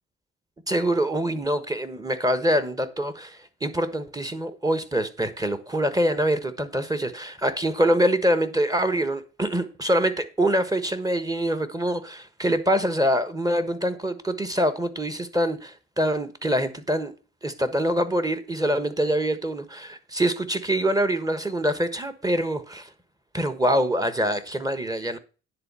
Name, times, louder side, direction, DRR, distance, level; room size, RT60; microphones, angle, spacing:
voice 1, 0.7-17.1 17.4-22.9 23.3-25.2, equal, 10° right, 1.2 m, -25 dB
10.0 x 4.0 x 6.9 m
cardioid pair, 90°, 30 cm